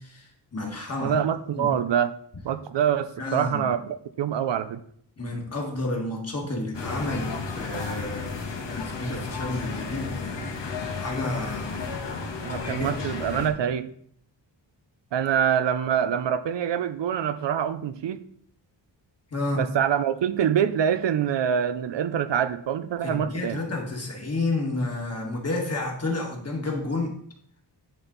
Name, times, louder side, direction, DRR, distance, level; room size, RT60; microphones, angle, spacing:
voice 1, 0.0-1.2 1.5-1.7 3.2-3.7 5.2-8.4 8.7-12.9 19.3-19.7 23.0-27.1, left 2 dB, 35° left, 0 dB, 1.9 m, -31 dB
voice 2, 1.0-2.1 2.4-4.8 12.4-13.9 15.1-18.2 19.6-23.6, right 8 dB, 70° right, 11 dB, 0.6 m, -25 dB
sound 1, 6.7-13.5, left 4 dB, 70° left, 1.4 m, -33 dB
10.5 x 4.4 x 4.0 m, 0.63 s
wide cardioid pair, 115°, 44 cm